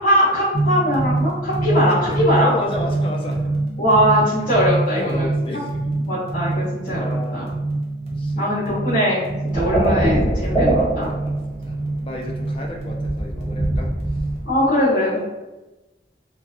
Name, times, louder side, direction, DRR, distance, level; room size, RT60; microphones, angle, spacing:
voice 1, 0.0-2.5 3.8-5.3 6.0-7.0 7.3-7.5 8.4-11.1 14.4-15.2, equal, 50° left, -13 dB, 1.0 m, -20 dB
sound 1, 0.5-14.5, right 2 dB, 35° right, 0.5 m, -25 dB
voice 2, 1.7-3.5 4.4-4.5 4.9-5.9 6.6-7.5 8.1-8.6 11.0-13.9, left 1 dB, 30° left, 1 dB, 0.3 m, -32 dB
sound 2, 9.5-12.0 12.3-14.5, right 1 dB, 5° right, 1.3 m, -23 dB
3.0 x 2.3 x 2.3 m, 1.1 s
head